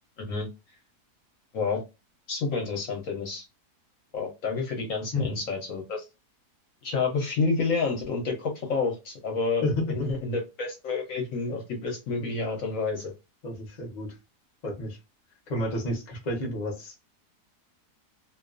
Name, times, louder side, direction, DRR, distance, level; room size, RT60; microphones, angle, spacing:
voice 1, 0.2-0.5 1.5-1.8 2.3-3.4 4.1-6.0 6.8-13.1, left 4 dB, 65° left, 2 dB, 0.9 m, -29 dB
voice 2, 9.6-10.1 13.4-14.2 14.6-15.0 15.5-17.0, left 1 dB, 40° left, 1 dB, 0.6 m, -30 dB
2.6 x 2.3 x 2.4 m, 0.25 s
omnidirectional pair, 1.7 m